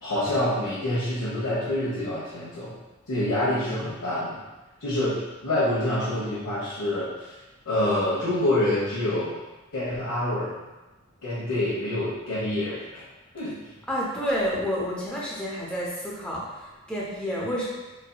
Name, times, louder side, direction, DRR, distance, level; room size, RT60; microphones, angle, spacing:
voice 1, 0.0-2.7 3.1-4.4 4.8-7.3 7.6-9.3 9.7-10.5 11.2-13.0 13.3-13.7, left 1 dB, 90° left, -12 dB, 1.2 m, -26 dB
voice 2, 13.9-17.7, equal, 5° left, -6 dB, 0.7 m, -29 dB
4.6 x 2.9 x 2.3 m, 1.1 s
head